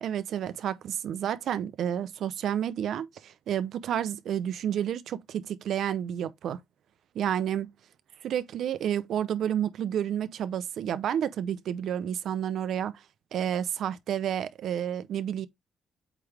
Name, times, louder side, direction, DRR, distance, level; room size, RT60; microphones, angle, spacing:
voice 1, 0.0-6.6 7.1-7.7 8.2-13.0 13.3-15.5, right 9 dB, 70° right, 0.6 m, -30 dB
8.3 x 3.5 x 3.3 m
cardioid pair, 90°, 0 cm